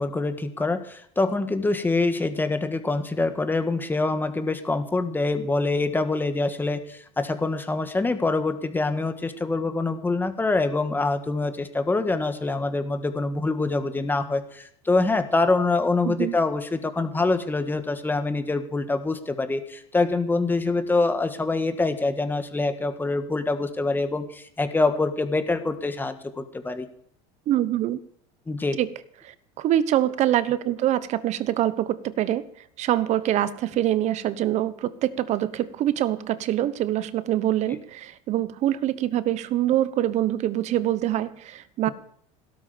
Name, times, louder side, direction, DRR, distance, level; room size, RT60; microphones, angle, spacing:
voice 1, 0.0-26.9 28.5-28.8, left 3 dB, 15° left, 8 dB, 1.7 m, -25 dB
voice 2, 16.0-16.4 27.5-28.0 28.8-28.9 29.2-32.5 32.8-41.9, right 12 dB, 50° right, 16 dB, 1.0 m, -24 dB
16.5 x 13.0 x 5.1 m, 0.65 s
supercardioid pair, 115°, 16 cm